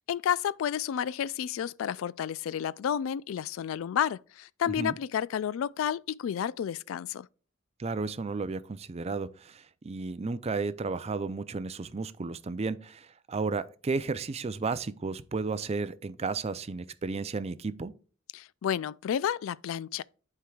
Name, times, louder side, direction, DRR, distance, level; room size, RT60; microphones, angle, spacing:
voice 1, 0.0-7.3 18.3-20.0, left 9 dB, 70° left, 0.3 m, -31 dB
voice 2, 7.8-17.9, right 4 dB, 30° right, 0.4 m, -33 dB
11.5 x 4.6 x 2.3 m
head